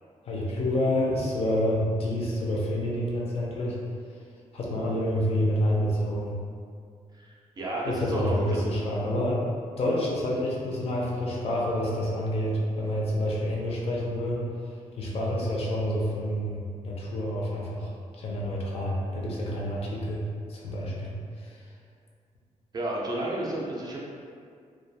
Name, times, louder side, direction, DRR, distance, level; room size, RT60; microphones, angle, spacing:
voice 1, 0.3-3.8 4.5-6.4 7.9-9.5 9.8-14.5 15.0-20.2 20.5-21.6, left 1 dB, 50° left, -3 dB, 0.4 m, -28 dB
voice 2, 7.1-8.6 22.7-24.0, right 1 dB, 30° right, -4 dB, 0.3 m, -32 dB
2.3 x 2.2 x 2.7 m, 2.2 s
wide cardioid pair, 165°, 13 cm